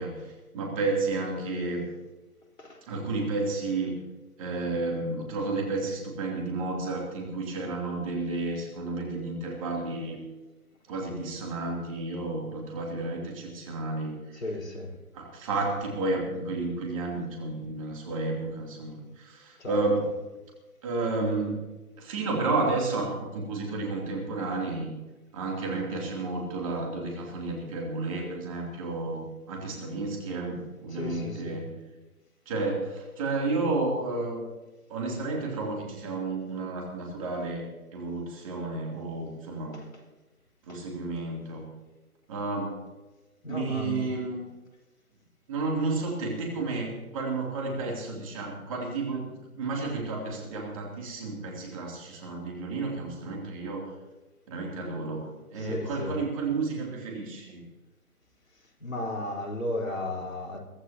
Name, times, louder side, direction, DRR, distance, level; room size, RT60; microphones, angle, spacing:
voice 1, 0.0-1.9 2.9-4.0 4.4-10.2 10.9-14.4 15.1-20.1 20.8-21.6 22.0-24.9 25.3-29.2 29.5-31.7 32.5-34.4 34.9-39.8 40.6-41.7 42.3-42.8 43.5-44.4 45.5-53.9 54.5-57.6, right 3 dB, 20° right, 0 dB, 3.0 m, -31 dB
voice 2, 14.3-15.0 19.6-20.1 30.9-31.6 39.7-39.9 40.7-40.8 43.4-44.1 55.6-56.2 58.5-60.6, left 1 dB, 60° left, 0 dB, 4.6 m, -35 dB
23.5 x 13.5 x 2.9 m, 1.2 s
figure-of-eight pair, 150°, 45 cm